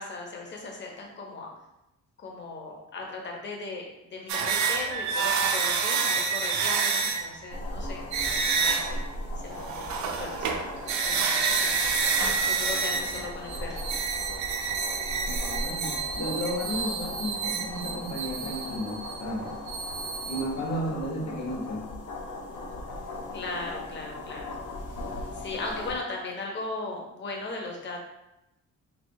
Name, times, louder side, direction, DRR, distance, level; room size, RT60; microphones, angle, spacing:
voice 1, 0.0-1.5 2.2-3.8 4.1-9.0 9.4-10.7 11.0-11.7 12.4-13.8 23.3-24.6 25.3-28.0, left 3 dB, 40° left, 0 dB, 0.7 m, -37 dB
sound 1, 4.3-7.5 8.1-9.1 9.5-20.7, right 5 dB, 70° right, 0.5 m, -29 dB
sound 2, 7.5-26.0, left 2 dB, 90° left, 0.8 m, -38 dB
voice 2, 15.3-19.5 20.2-21.9, equal, 60° left, -1 dB, 1.0 m, -33 dB
3.6 x 3.3 x 2.7 m, 0.90 s
wide cardioid pair, 165°, 30 cm